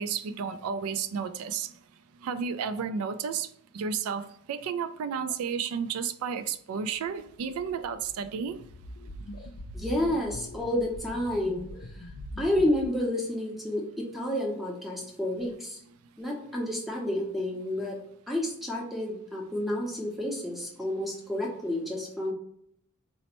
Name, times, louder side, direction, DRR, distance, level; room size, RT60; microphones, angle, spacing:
voice 1, 0.0-1.7 2.2-3.5 3.7-8.6, right 6 dB, 75° right, 12 dB, 0.3 m, -32 dB
sound 1, 7.1-12.8, equal, 75° left, 0.4 m, -43 dB
voice 2, 9.7-11.7 12.0-12.1 12.4-15.8 16.2-18.0 18.3-22.3, left 1 dB, ahead, -1 dB, 0.6 m, -30 dB
4.0 x 2.1 x 2.9 m, 0.70 s
head